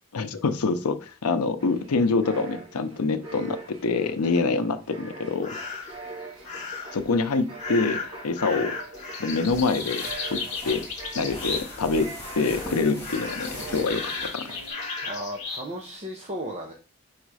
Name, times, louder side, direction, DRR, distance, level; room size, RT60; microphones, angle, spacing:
voice 1, 0.1-5.5 6.9-8.8 9.2-10.9 11.1-14.6, left 4 dB, 80° left, 10 dB, 0.6 m, -26 dB
sound 1, 1.6-15.1, right 3 dB, 65° right, 3.0 m, -43 dB
sound 2, 5.4-6.0 6.4-7.0 7.6-11.9 12.2-12.7 13.0-15.7, left 4 dB, 35° left, 1.3 m, -35 dB
sound 3, 9.3-14.7, left 1 dB, 10° left, 2.4 m, -41 dB
voice 2, 15.0-16.7, equal, 30° right, 0 dB, 0.8 m, -35 dB
4.9 x 4.0 x 4.8 m, 0.35 s
head